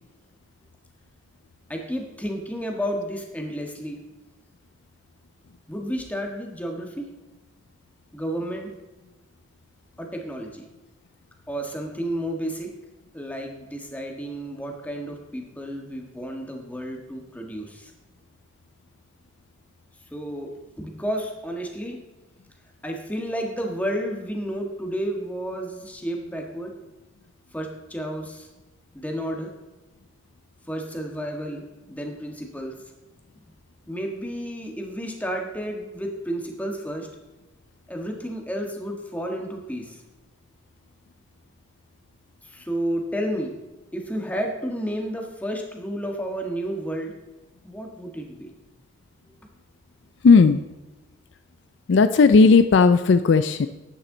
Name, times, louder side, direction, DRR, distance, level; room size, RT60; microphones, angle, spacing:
voice 1, 1.7-4.0 5.7-7.1 8.1-8.7 10.0-10.6 11.5-12.7 13.1-17.9 20.1-20.5 20.8-22.0 22.8-26.7 27.5-28.5 28.9-29.5 30.7-31.6 31.9-32.7 33.9-37.1 37.9-40.0 42.5-43.5 43.9-47.1 47.6-48.5, equal, 10° left, 2 dB, 1.5 m, -31 dB
voice 2, 50.2-50.6 51.9-53.7, left 4 dB, 60° left, 11 dB, 0.4 m, -15 dB
11.0 x 9.1 x 3.9 m, 1.1 s
head